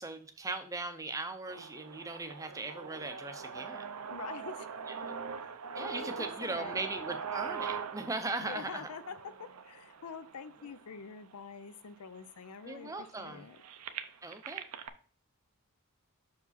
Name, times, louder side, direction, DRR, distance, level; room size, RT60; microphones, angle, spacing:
voice 1, 0.0-3.8 4.9-5.1 5.7-8.9 12.6-13.4 14.2-14.6, right 3 dB, 15° right, 8 dB, 0.5 m, -39 dB
sound 1, 1.5-11.4 12.1-12.2 12.4-14.9, right 6 dB, 80° right, 0.6 m, -42 dB
voice 2, 4.1-4.8 5.1-5.5 5.8-6.8 8.4-9.2 9.6-13.6, left 5 dB, 80° left, 12 dB, 0.5 m, -46 dB
5.9 x 4.8 x 4.1 m, 0.41 s
head